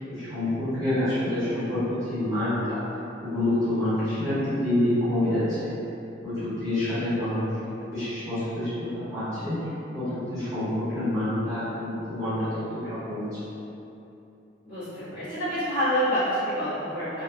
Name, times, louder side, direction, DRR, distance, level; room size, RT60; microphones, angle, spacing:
voice 1, 0.0-2.8 3.2-5.7 6.2-7.4 7.8-9.6 9.9-13.4, left 1 dB, 15° right, -17 dB, 1.2 m, -27 dB
voice 2, 14.6-17.2, equal, 25° left, -17 dB, 1.4 m, -27 dB
3.4 x 2.4 x 2.2 m, 2.9 s
head